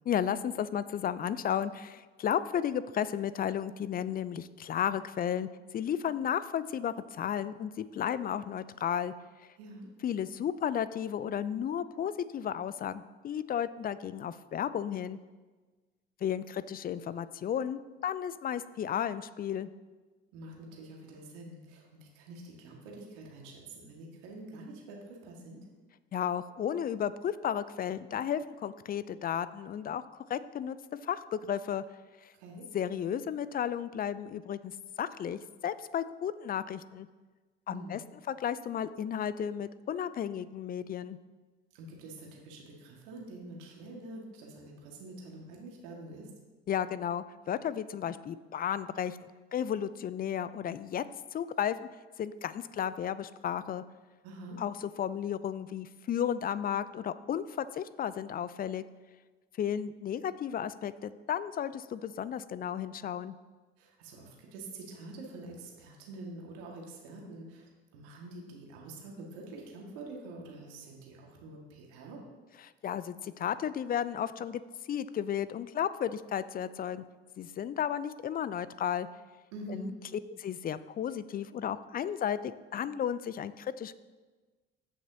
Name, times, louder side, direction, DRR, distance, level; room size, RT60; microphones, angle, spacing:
voice 1, 0.1-5.5 5.7-9.1 10.0-15.2 16.2-19.7 26.1-30.8 31.0-31.8 32.7-37.1 37.7-38.0 38.3-41.2 46.7-51.0 51.3-51.8 52.2-53.8 54.6-58.8 59.6-63.3 72.8-74.6 74.9-77.0 77.4-79.1 79.7-79.8 80.4-83.9, left 9 dB, 30° left, 15 dB, 0.4 m, -33 dB
voice 2, 9.6-9.9 20.3-25.6 32.3-32.7 37.7-38.0 41.7-46.3 54.2-54.6 63.8-72.2 79.5-79.9, right 2 dB, 70° right, -1 dB, 2.0 m, -46 dB
15.0 x 6.1 x 2.8 m, 1.3 s
figure-of-eight pair, 60°, 30 cm